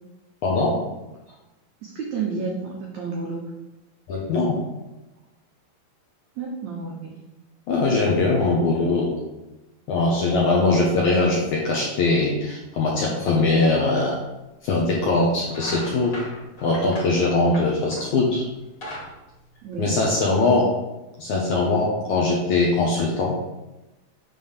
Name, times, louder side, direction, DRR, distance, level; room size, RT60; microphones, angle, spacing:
voice 1, 0.4-0.8 4.1-4.6 7.7-9.1 9.9-14.2 14.6-16.1 16.6-18.4 19.8-20.7 21.2-23.4, left 3 dB, 70° left, -3 dB, 1.9 m, -21 dB
voice 2, 1.8-3.4 6.4-7.2 19.6-20.0 20.5-20.6, right 4 dB, 80° right, -1 dB, 1.6 m, -31 dB
sound 1, 14.9-15.1 15.5-18.2 18.6-20.2, left 1 dB, 35° left, 2.3 m, -38 dB
7.6 x 3.7 x 6.6 m, 1.0 s
omnidirectional pair, 4.7 m